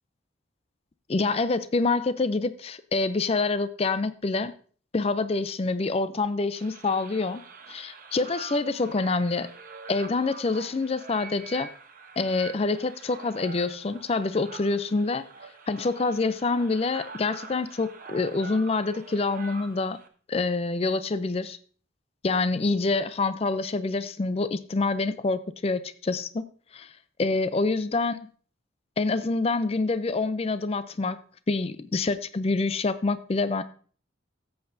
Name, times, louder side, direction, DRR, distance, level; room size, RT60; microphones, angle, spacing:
voice 1, 1.1-4.5 4.9-7.4 7.7-9.5 9.9-11.7 12.2-15.2 15.7-20.0 20.3-21.6 22.2-26.4 26.7-26.9 27.2-28.2 29.0-31.2 31.5-33.6, left 3 dB, 30° left, 14 dB, 0.4 m, -26 dB
sound 1, 6.5-20.1, right 4 dB, 45° right, 0.9 m, -45 dB
13.5 x 8.0 x 2.6 m, 0.44 s
head